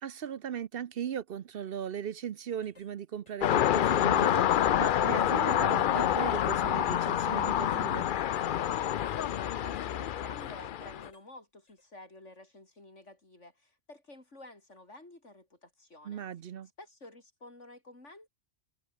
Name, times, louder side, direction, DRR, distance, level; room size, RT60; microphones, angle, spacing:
voice 1, 0.0-8.1 16.0-16.7, right 9 dB, 60° right, 0.8 m, -38 dB
sound 1, 2.0-2.2 2.6-2.9 3.3-3.6 3.9-5.9 6.2-6.5 7.0-7.2 7.7-7.9 8.3-8.5 9.0-9.2 9.7-9.9 10.4-10.6 11.0-11.3 11.7-11.8, left 3 dB, 75° left, 3.5 m, -59 dB
sound 2, 3.4-11.1, left 10 dB, 55° left, 0.6 m, -27 dB
voice 2, 9.2-16.2 16.8-18.3, left 2 dB, 90° left, 6.2 m, -51 dB
omnidirectional pair, 1.2 m